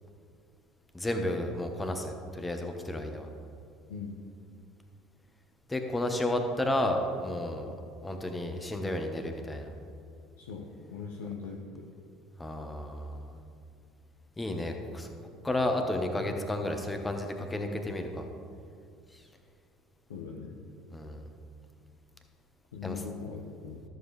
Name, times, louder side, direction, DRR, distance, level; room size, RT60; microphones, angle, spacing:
voice 1, 0.9-3.3 5.7-7.7 8.0-9.7 12.4-13.3 14.4-15.1 15.4-18.3 19.1-19.2 20.9-21.2 22.8-23.0, left 1 dB, 15° left, 5 dB, 1.2 m, -32 dB
voice 2, 3.9-4.2 10.4-11.9 20.1-20.6 22.7-23.8, left 5 dB, 80° left, -1 dB, 0.7 m, -40 dB
13.0 x 7.3 x 3.3 m, 2.4 s
hypercardioid pair, 65°, 0 cm